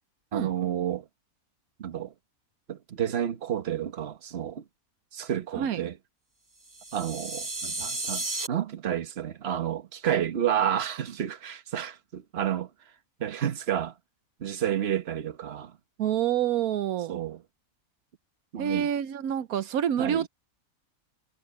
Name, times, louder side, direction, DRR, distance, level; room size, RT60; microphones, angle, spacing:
voice 1, 0.3-1.1 1.8-2.1 2.7-4.6 5.1-5.9 6.9-12.7 13.2-13.9 14.4-15.8 17.1-17.4 18.5-18.9 20.0-20.3, right 10 dB, 50° right, 1.3 m, -30 dB
sound 1, 6.7-8.5, right 2 dB, 20° right, 0.7 m, -33 dB
voice 2, 16.0-17.1 18.6-20.3, right 10 dB, 80° right, 1.2 m, -27 dB
omnidirectional pair, 1.5 m